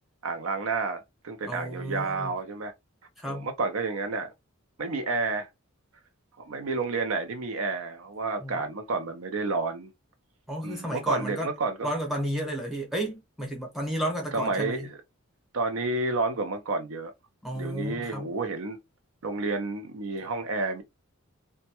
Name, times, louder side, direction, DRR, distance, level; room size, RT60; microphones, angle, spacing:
voice 1, 0.2-2.7 3.2-4.3 4.8-5.5 6.4-9.9 10.6-11.9 14.3-14.8 15.5-17.1 17.5-18.8 19.2-20.8, right 3 dB, 80° right, 0.5 m, -30 dB
voice 2, 1.4-2.3 3.2-3.5 8.4-8.6 10.5-11.5 11.8-14.9 17.4-18.3, equal, ahead, 0.8 m, -32 dB
2.2 x 2.1 x 2.8 m
head